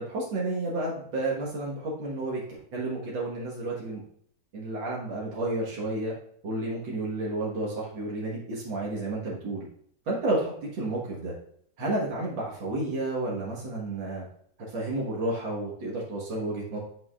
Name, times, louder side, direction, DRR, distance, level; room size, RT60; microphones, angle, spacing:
voice 1, 0.0-4.0 4.5-6.1 6.4-9.7 10.1-11.4 11.8-14.2 14.7-16.8, right 2 dB, 90° right, -5 dB, 2.4 m, -31 dB
10.5 x 6.0 x 2.5 m, 0.66 s
omnidirectional pair, 2.0 m